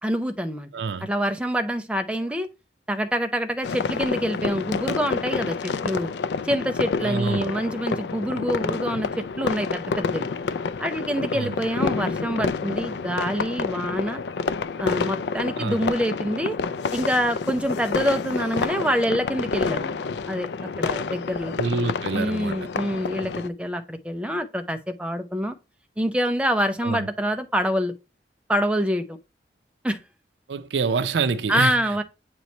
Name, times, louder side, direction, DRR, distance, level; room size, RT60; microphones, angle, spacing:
voice 1, 0.0-0.7 1.0-2.5 2.9-6.1 6.4-10.3 10.8-14.2 14.8-16.6 16.9-20.5 20.8-21.5 22.1-25.6 26.0-27.9 28.5-29.2 29.8-30.0 31.5-32.0, equal, 5° right, 0.5 m, -26 dB
voice 2, 0.7-1.1 7.0-7.5 11.3-11.6 15.6-15.9 21.6-22.6 26.8-27.1 30.5-31.8, right 4 dB, 85° right, 0.5 m, -26 dB
sound 1, 3.6-23.5, left 5 dB, 75° left, 0.4 m, -29 dB
8.1 x 3.0 x 4.1 m
head